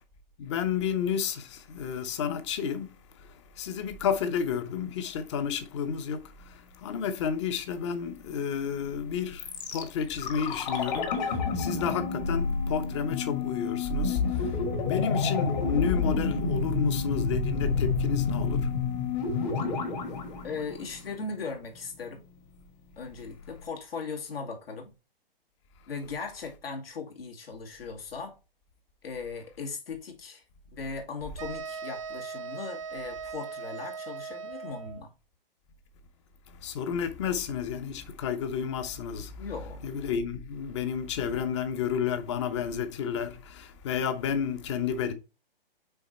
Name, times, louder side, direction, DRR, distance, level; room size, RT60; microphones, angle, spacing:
voice 1, 0.4-2.9 3.2-14.6 14.9-18.7 19.3-19.4 36.5-39.4 39.8-45.1, left 7 dB, 30° left, 0.8 m, -31 dB
sound 1, 9.4-21.4 21.6-21.7, left 4 dB, 50° left, 1.9 m, -29 dB
voice 2, 20.4-22.2 23.0-24.9 25.9-28.4 29.0-30.4 30.7-35.1 39.4-39.8, left 4 dB, 75° left, 2.2 m, -38 dB
sound 2, 31.4-35.0, right 5 dB, 35° right, 0.4 m, -39 dB
5.6 x 4.0 x 4.4 m
hypercardioid pair, 150°, 30 cm